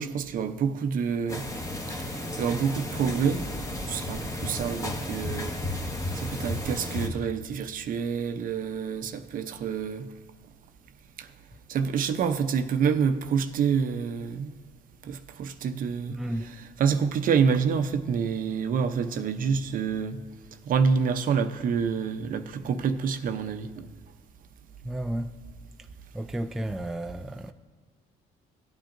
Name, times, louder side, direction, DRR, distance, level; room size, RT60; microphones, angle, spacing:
voice 1, 0.0-1.5 2.4-3.4 3.9-5.5 6.1-10.1 11.2-11.3 11.7-14.6 15.0-16.2 16.8-20.2 20.7-23.9, right 6 dB, 55° right, 0.7 m, -27 dB
sound 1, 1.3-7.1, left 1 dB, 20° left, 1.4 m, -33 dB
voice 2, 16.1-16.5 24.8-25.3 26.1-27.5, right 1 dB, ahead, 0.4 m, -32 dB
17.5 x 8.8 x 2.6 m
cardioid pair, 110°, 17 cm